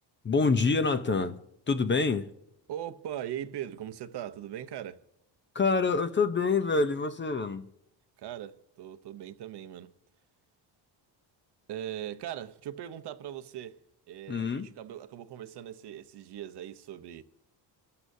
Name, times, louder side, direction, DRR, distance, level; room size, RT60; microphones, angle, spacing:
voice 1, 0.2-1.4 1.7-2.3 5.5-7.7 14.3-14.7, left 4 dB, 25° left, 0.6 m, -26 dB
voice 2, 2.7-5.0 8.2-9.9 11.7-13.8 14.1-17.2, right 11 dB, 60° right, 0.8 m, -40 dB
26.5 x 12.5 x 2.7 m
cardioid pair, 115°, 46 cm